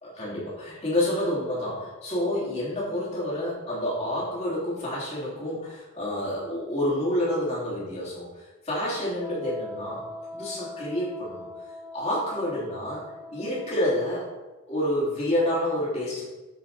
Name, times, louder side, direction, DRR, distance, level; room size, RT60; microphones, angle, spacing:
voice 1, 0.0-8.3 8.6-11.5 11.9-14.3 14.7-16.2, left 1 dB, 30° left, -6 dB, 3.3 m, -28 dB
Wind instrument woodwind instrument, 9.1-13.9, left 2 dB, 5° left, 2.3 m, -41 dB
12.5 x 5.3 x 4.3 m, 1.2 s
head